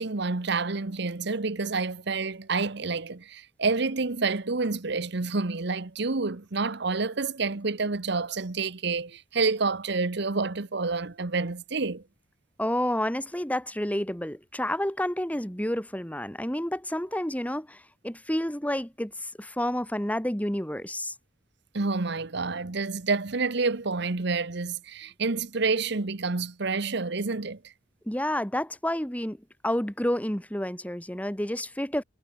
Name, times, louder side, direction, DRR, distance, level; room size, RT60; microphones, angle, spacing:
voice 1, 0.0-12.0 21.7-27.7, right 4 dB, 65° right, 1.1 m, -28 dB
voice 2, 12.6-21.1 28.1-29.4 29.6-32.0, left 1 dB, 10° left, 2.8 m, -30 dB
head